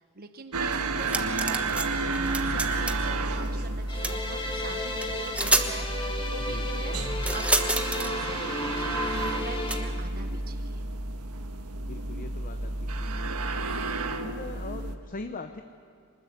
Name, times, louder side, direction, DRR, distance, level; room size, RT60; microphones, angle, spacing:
voice 1, 0.0-10.9, right 4 dB, 45° right, 7 dB, 1.0 m, -43 dB
sound 1, 0.5-15.0, right 2 dB, 85° right, 1.5 m, -31 dB
sound 2, 1.0-1.9 2.1-3.1 4.0-4.2 5.0-5.1 5.3-5.7 7.2-8.1 9.7-9.8, right 2 dB, 5° right, 1.2 m, -27 dB
sound 3, 3.9-9.9, left 2 dB, 25° left, 2.4 m, -34 dB
voice 2, 11.8-12.7 13.0-13.3 14.2-15.6, left 3 dB, 40° left, 7 dB, 0.9 m, -40 dB
24.5 x 20.5 x 8.1 m, 2.4 s
head